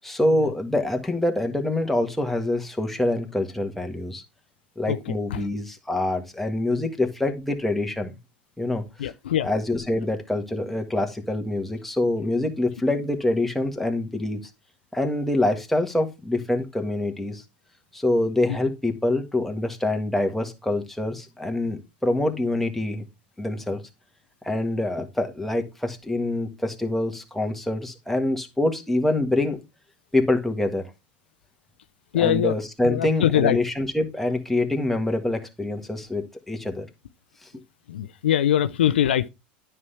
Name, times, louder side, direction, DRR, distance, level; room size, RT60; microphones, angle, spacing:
voice 1, 0.0-4.2 4.8-8.1 8.6-9.1 9.4-14.4 14.9-17.4 17.9-23.0 23.4-23.8 24.4-29.6 30.1-30.8 32.1-36.9, left 1 dB, 5° left, 1.6 m, -25 dB
voice 2, 9.0-9.5 32.1-32.5 32.8-33.6 37.9-39.3, left 11 dB, 90° left, 0.5 m, -22 dB
9.5 x 5.7 x 3.4 m
hypercardioid pair, 95°, 6 cm